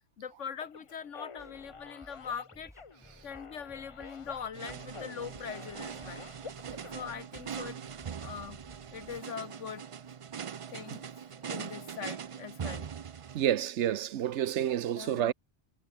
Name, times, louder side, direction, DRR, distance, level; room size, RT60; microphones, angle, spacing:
voice 1, 0.2-2.7 3.2-6.3 6.9-7.8 8.2-8.6 8.9-9.9 10.7-11.1 11.4-12.9 14.9-15.3, left 7 dB, 85° left, 1.6 m, -42 dB
sound 1, 0.6-7.1, left 4 dB, 30° left, 0.8 m, -49 dB
sound 2, 1.4-9.2, equal, ahead, 7.8 m, -58 dB
sound 3, 4.5-13.4, right 7 dB, 60° right, 0.3 m, -42 dB
voice 2, 13.3-15.3, right 11 dB, 75° right, 1.0 m, -29 dB
omnidirectional pair, 1.2 m